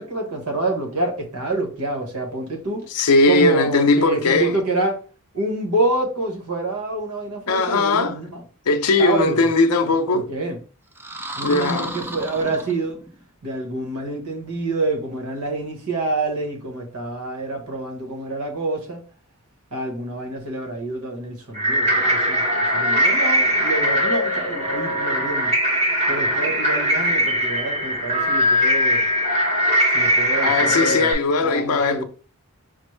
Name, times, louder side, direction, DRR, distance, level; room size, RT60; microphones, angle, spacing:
voice 1, 0.0-2.9 3.3-5.0 5.3-8.4 9.0-9.5 9.8-10.6 11.3-13.0 13.4-19.0 19.7-25.5 26.1-29.1 29.9-31.1 31.4-32.0, right 2 dB, 80° right, 1.1 m, -27 dB
voice 2, 2.9-4.6 7.5-8.2 8.7-10.2 11.4-11.9 30.4-32.0, left 3 dB, 80° left, 0.5 m, -19 dB
sound 1, 10.9-13.2, right 1 dB, 10° right, 0.3 m, -33 dB
sound 2, 21.5-31.1, equal, 30° right, 0.9 m, -20 dB
5.1 x 2.0 x 3.1 m
head